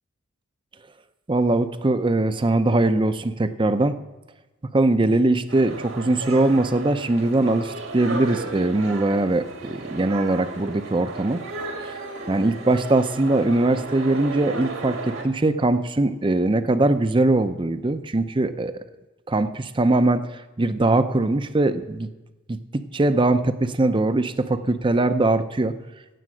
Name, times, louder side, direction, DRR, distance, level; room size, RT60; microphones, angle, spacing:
voice 1, 1.3-3.9 4.7-11.4 12.3-18.8 19.3-22.1 22.5-25.7, right 2 dB, 25° right, 11 dB, 0.6 m, -21 dB
sound 1, 5.5-15.2, right 3 dB, 75° right, 2.0 m, -34 dB
17.0 x 7.5 x 6.2 m, 1.1 s
head